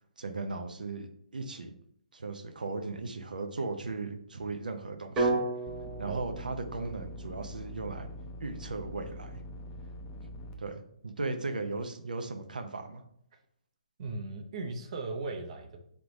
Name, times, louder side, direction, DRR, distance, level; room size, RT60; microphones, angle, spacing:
voice 1, 0.2-1.1 1.3-1.7 2.1-5.4 6.0-8.1 8.4-9.4 10.6-13.0, right 3 dB, 85° right, 7 dB, 0.6 m, -37 dB
sound 1, 5.2-9.2, right 2 dB, 20° right, 1.1 m, -35 dB
sound 2, 5.7-10.5, left 1 dB, 20° left, 0.5 m, -44 dB
voice 2, 14.0-15.9, right 3 dB, 45° right, 4 dB, 0.6 m, -37 dB
3.9 x 3.4 x 3.0 m, 0.68 s
hypercardioid pair, 145°, 4 cm